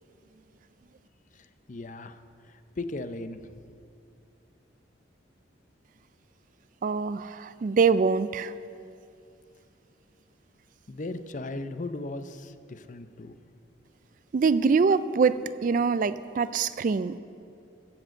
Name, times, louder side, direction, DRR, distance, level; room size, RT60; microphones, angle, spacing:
voice 1, 1.3-3.5 10.9-13.3, left 2 dB, 40° left, 11 dB, 0.5 m, -37 dB
voice 2, 6.8-8.5 14.3-17.2, right 5 dB, 45° right, 15 dB, 0.3 m, -24 dB
14.0 x 7.6 x 7.6 m, 2.5 s
head